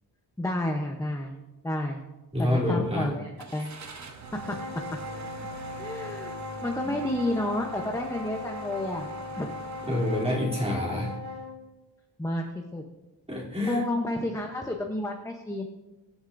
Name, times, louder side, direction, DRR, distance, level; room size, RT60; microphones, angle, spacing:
voice 1, 0.4-1.4 1.6-2.0 2.4-3.7 4.5-4.6 5.8-9.1 9.4-9.6 12.2-12.8 13.6-15.7, left 1 dB, 5° left, 2 dB, 0.8 m, -30 dB
voice 2, 2.3-3.1 3.6-3.7 6.8-6.9 9.8-11.2 13.3-13.8, left 1 dB, 15° right, -5 dB, 3.0 m, -27 dB
Car / Engine starting, 3.4-10.2, right 3 dB, 40° right, 0.9 m, -44 dB
sound 1, 4.1-11.6, left 2 dB, 60° right, 2.3 m, -39 dB
23.5 x 8.0 x 2.6 m, 1.1 s
wide cardioid pair, 155°, 41 cm